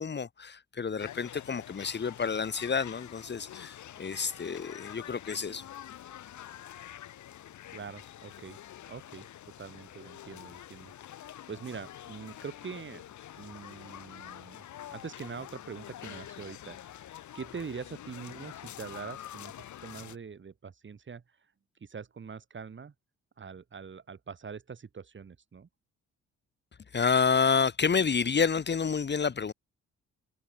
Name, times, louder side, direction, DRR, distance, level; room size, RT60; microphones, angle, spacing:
voice 1, 0.0-5.7 26.9-29.5, left 6 dB, 35° left, 1.9 m, -29 dB
sound 1, 1.0-20.2, left 11 dB, 75° left, 4.8 m, -47 dB
voice 2, 7.7-8.6 8.9-9.3 9.6-10.9 11.5-13.0 13.4-14.7 14.9-16.8 17.3-21.2 21.8-22.9 23.4-25.7, right 6 dB, 40° right, 6.0 m, -43 dB
cardioid pair, 90°, 30 cm